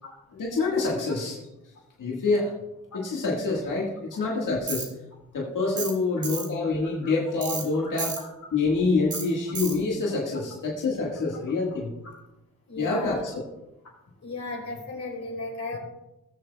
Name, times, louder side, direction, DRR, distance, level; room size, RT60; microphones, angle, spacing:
voice 1, 0.3-1.4 2.0-2.5 2.9-4.9 5.3-8.2 8.5-11.9 12.8-13.4, left 3 dB, 90° left, -4 dB, 1.8 m, -26 dB
Tools, 4.7-4.9 5.8-6.0 6.2-6.5 7.4-7.6 8.0-8.2 9.1-9.2 9.5-9.8, right 4 dB, 70° right, 2.1 m, -31 dB
voice 2, 12.7-13.2 14.2-15.8, left 3 dB, 65° left, -1 dB, 3.7 m, -35 dB
18.5 x 7.1 x 2.3 m, 0.95 s
cardioid pair, 70°, 30 cm